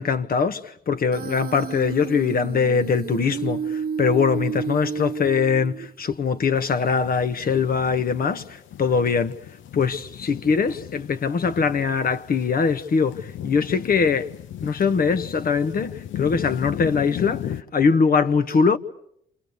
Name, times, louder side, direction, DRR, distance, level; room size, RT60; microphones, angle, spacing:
voice 1, 0.0-9.4 9.7-14.3 14.6-18.8, left 5 dB, 50° left, 1.4 m, -22 dB
Human voice, 1.1-6.1, right 7 dB, 50° right, 1.1 m, -31 dB
sound 1, 6.5-17.6, left 11 dB, 75° left, 1.0 m, -37 dB
28.5 x 27.5 x 6.9 m
cardioid pair, 90°, 20 cm